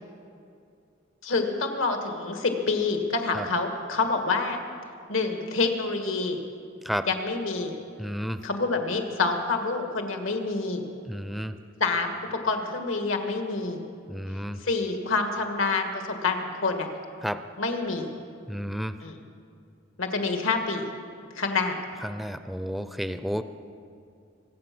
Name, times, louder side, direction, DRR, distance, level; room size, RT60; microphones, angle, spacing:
voice 1, 1.2-4.6 5.1-6.4 7.1-7.7 8.4-10.8 11.8-13.8 14.6-16.9 17.6-18.1 19.0-19.2 20.0-20.9 21.3-21.8, left 3 dB, 90° left, 5 dB, 1.7 m, -27 dB
voice 2, 8.0-8.4 11.1-11.5 14.1-14.6 17.2-17.4 18.5-18.9 22.0-23.4, equal, ahead, 10 dB, 0.4 m, -31 dB
24.5 x 8.4 x 6.0 m, 2.4 s
head